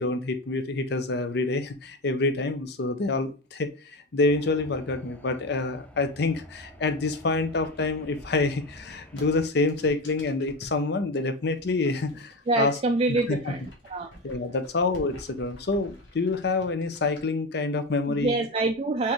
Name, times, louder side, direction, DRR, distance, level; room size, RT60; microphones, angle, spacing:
voice 1, 0.0-12.7 13.1-13.5 14.2-18.4, left 3 dB, 60° left, 10 dB, 0.6 m, -27 dB
sound 1, 4.3-9.5, equal, 10° left, 0.7 m, -48 dB
sound 2, 7.0-10.8 11.5-12.8 13.1-17.2, left 1 dB, 75° left, 1.4 m, -49 dB
voice 2, 12.5-14.1 18.1-19.1, right 2 dB, 30° right, 3 dB, 0.4 m, -26 dB
4.6 x 3.5 x 3.1 m, 0.34 s
head